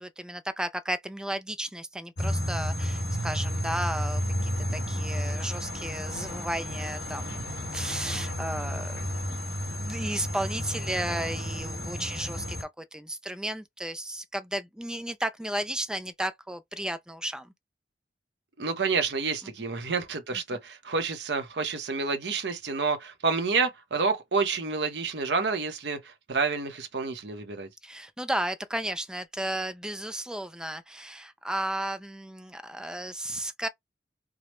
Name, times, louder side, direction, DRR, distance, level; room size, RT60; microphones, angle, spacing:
voice 1, 0.0-9.4 9.8-17.5 27.8-33.7, right 1 dB, 5° right, 0.3 m, -34 dB
sound 1, 2.2-12.6, equal, 75° left, 1.5 m, -32 dB
voice 2, 18.6-27.7, right 4 dB, 70° right, 0.8 m, -29 dB
4.8 x 2.1 x 3.0 m
head